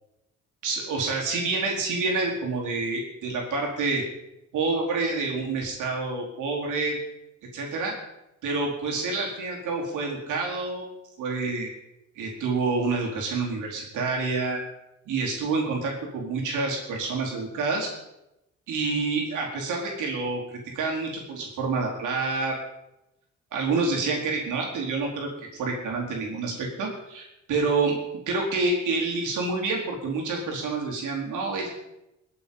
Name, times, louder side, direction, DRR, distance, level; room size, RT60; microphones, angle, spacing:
voice 1, 0.6-4.0 4.5-7.0 7.5-7.9 8.4-10.8 11.2-11.7 12.2-14.6 15.1-17.9 18.7-22.6 23.5-28.0 28.3-31.7, right 3 dB, 80° right, -1 dB, 4.6 m, -28 dB
21.5 x 8.4 x 5.6 m, 0.89 s
cardioid pair, 90°, 30 cm